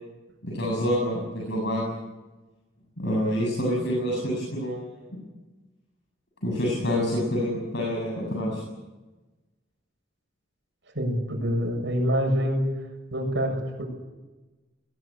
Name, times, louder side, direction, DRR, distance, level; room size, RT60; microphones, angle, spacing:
voice 1, 0.4-1.9 3.0-5.0 6.4-8.6, equal, 60° left, -2 dB, 8.0 m, -27 dB
voice 2, 10.9-12.6 13.1-13.9, equal, 65° right, 3 dB, 7.3 m, -26 dB
20.5 x 20.5 x 10.0 m, 1.1 s
head